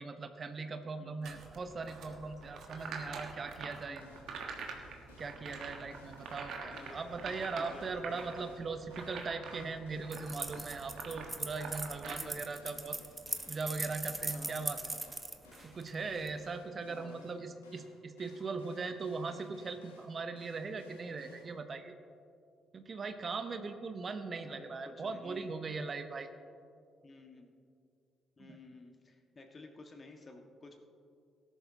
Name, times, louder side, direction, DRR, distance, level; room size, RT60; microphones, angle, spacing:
voice 1, 0.0-4.0 5.2-13.0 13.5-14.8 15.6-21.9 22.7-26.3, right 4 dB, 45° right, 9 dB, 0.9 m, -40 dB
voice 2, 1.0-1.3 3.8-4.1 6.7-7.3 7.6-8.7 12.0-12.4 14.3-14.7 16.9-17.3 24.4-25.5 27.0-27.4 28.4-30.8, left 3 dB, 40° left, 4 dB, 1.6 m, -53 dB
sound 1, 1.2-12.1, right 4 dB, 65° right, 1.4 m, -46 dB
sound 2, 4.0-21.4, left 4 dB, 90° left, 1.0 m, -61 dB
sound 3, 10.1-16.4, right 2 dB, 20° right, 1.0 m, -40 dB
18.0 x 11.0 x 2.8 m, 2.4 s
hypercardioid pair, 45°, 0 cm